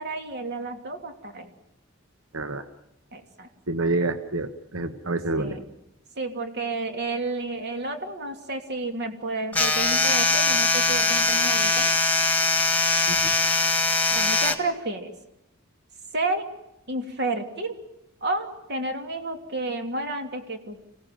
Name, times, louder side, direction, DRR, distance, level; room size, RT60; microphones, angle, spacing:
voice 1, 0.0-1.5 3.1-3.5 5.4-5.6 6.2-11.9 14.1-15.1 16.1-16.4 16.9-17.8 18.2-20.8, right 2 dB, 55° right, 5 dB, 3.0 m, -31 dB
voice 2, 2.3-2.6 3.7-5.6 13.1-13.3, right 2 dB, 80° right, 8 dB, 1.4 m, -28 dB
sound 1, 9.5-14.5, left 3 dB, 10° left, 1.9 m, -22 dB
26.5 x 17.5 x 9.3 m, 0.87 s
head